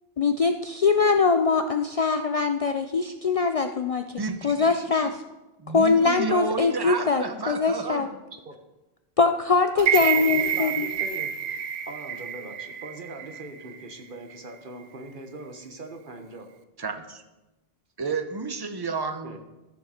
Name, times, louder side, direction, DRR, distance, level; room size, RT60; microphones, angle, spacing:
voice 1, 0.2-4.0 4.4-5.2 5.7-8.1 9.2-10.9, left 4 dB, 50° left, 7 dB, 0.4 m, -22 dB
voice 2, 4.2-4.7 5.0-5.1 5.6-8.2 16.8-17.2 18.0-19.4, right 4 dB, 25° right, 8 dB, 0.7 m, -31 dB
voice 3, 9.7-11.3 11.9-16.5 19.2-19.4, right 2 dB, 55° right, 5 dB, 1.2 m, -40 dB
sound 1, 9.8-13.9 14.3-14.4, right 9 dB, 85° right, 0.9 m, -28 dB
13.5 x 7.3 x 4.3 m, 1.0 s
omnidirectional pair, 1.0 m